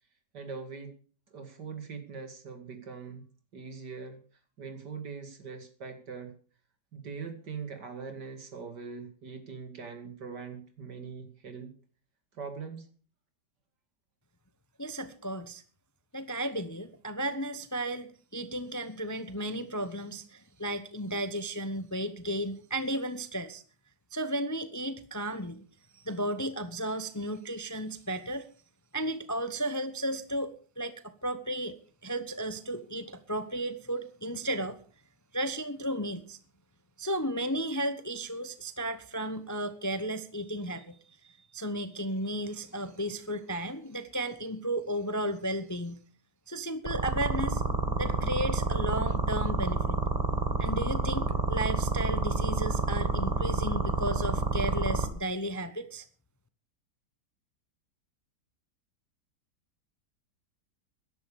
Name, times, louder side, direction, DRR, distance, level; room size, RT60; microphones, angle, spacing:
voice 1, 0.3-0.9 1.3-3.2 3.5-4.2 4.6-6.3 6.9-11.7 12.3-12.9, right 5 dB, 75° right, 7 dB, 3.1 m, -42 dB
voice 2, 14.8-15.6 16.1-23.6 24.1-25.6 25.9-28.4 28.9-31.8 32.0-34.8 35.3-36.4 37.0-46.0 46.5-47.6 48.0-50.0 50.6-56.0, right 1 dB, 15° left, 12 dB, 0.6 m, -34 dB
sound 1, 46.9-55.1, right 3 dB, 25° right, 1.8 m, -28 dB
14.0 x 11.0 x 6.9 m, 0.42 s
omnidirectional pair, 1.8 m